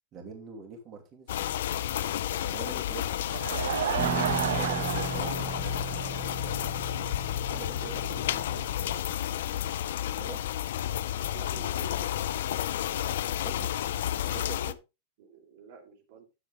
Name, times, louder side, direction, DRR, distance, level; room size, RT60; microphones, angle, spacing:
voice 1, 0.1-1.4 2.5-3.2 4.5-5.5 7.5-8.0 8.3-8.4 10.2-10.4 13.3-13.7 14.2-14.8, right 5 dB, 30° right, 0 dB, 2.8 m, -44 dB
sound 1, 1.3-14.7, left 11 dB, 75° left, 0.7 m, -31 dB
Laughter / Crowd, 3.1-6.6 6.9-7.0 7.5-7.6 7.8-7.9, right 10 dB, 85° right, 0.5 m, -32 dB
sound 2, 4.0-9.0, right 4 dB, 15° right, 2.4 m, -38 dB
voice 2, 7.8-8.7 11.3-12.1 15.2-16.3, right 7 dB, 60° right, 2 dB, 3.0 m, -49 dB
10.0 x 7.8 x 3.5 m, 0.26 s
supercardioid pair, 150°, 0 cm